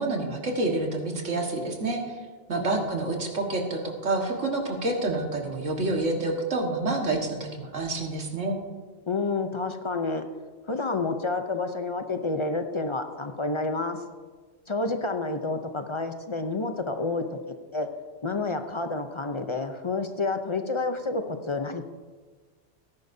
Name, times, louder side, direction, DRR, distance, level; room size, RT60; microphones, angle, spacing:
voice 1, 0.0-2.2 2.5-8.6, right 2 dB, 85° right, 1 dB, 2.0 m, -28 dB
voice 2, 2.5-2.8 9.1-10.3 10.7-14.0 14.7-17.2 17.7-17.9 18.2-21.8, left 3 dB, 35° left, 7 dB, 0.5 m, -29 dB
18.0 x 10.5 x 2.7 m, 1.5 s
omnidirectional pair, 1.2 m